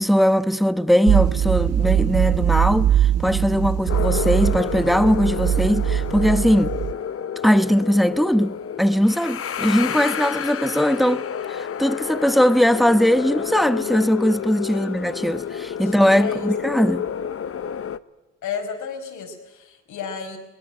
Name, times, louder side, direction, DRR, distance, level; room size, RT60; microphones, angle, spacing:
voice 1, 0.0-6.7 7.4-11.2 11.5-17.1, equal, ahead, 1.1 m, -20 dB
sound 1, 1.1-6.9, right 10 dB, 55° right, 0.7 m, -21 dB
sound 2, 3.9-18.0, left 8 dB, 50° left, 1.0 m, -30 dB
voice 2, 14.7-15.0 15.8-15.9 16.2-16.5 18.4-20.4, left 6 dB, 75° left, 5.3 m, -33 dB
22.5 x 20.0 x 9.1 m
cardioid pair, 90°, 30 cm